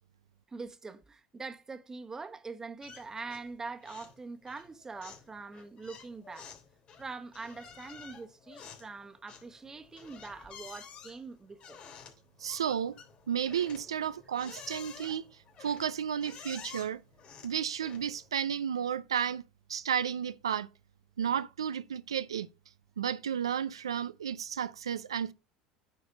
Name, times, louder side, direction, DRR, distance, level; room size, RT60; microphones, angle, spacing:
voice 1, 0.5-6.5 7.0-11.8, right 4 dB, 20° right, 1.1 m, -43 dB
sound 1, 2.8-3.5 3.8-4.2 4.5-18.3, left 6 dB, 45° left, 3.4 m, -51 dB
voice 2, 12.4-13.0 13.3-15.3 15.6-17.0 17.4-19.4 19.7-20.7 21.2-22.5 23.0-25.3, right 8 dB, 90° right, 0.4 m, -32 dB
9.6 x 4.3 x 5.2 m
hypercardioid pair, 80°, 3 cm